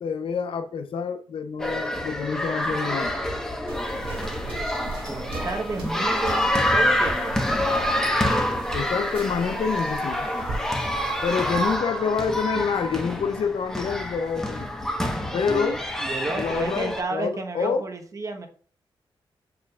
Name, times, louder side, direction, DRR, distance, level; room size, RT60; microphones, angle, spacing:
voice 1, 0.0-3.2 8.7-10.3 11.2-14.7 15.3-15.8 16.4-17.8, left 6 dB, 75° left, 0.6 m, -27 dB
sound 1, 1.6-17.0, left 1 dB, 5° left, 1.0 m, -27 dB
sound 2, 3.7-11.8, right 2 dB, 90° right, 2.0 m, -37 dB
voice 2, 5.1-7.4 11.3-12.0 15.5-18.5, right 3 dB, 35° right, 1.0 m, -32 dB
7.4 x 6.8 x 2.3 m
wide cardioid pair, 125°, 9 cm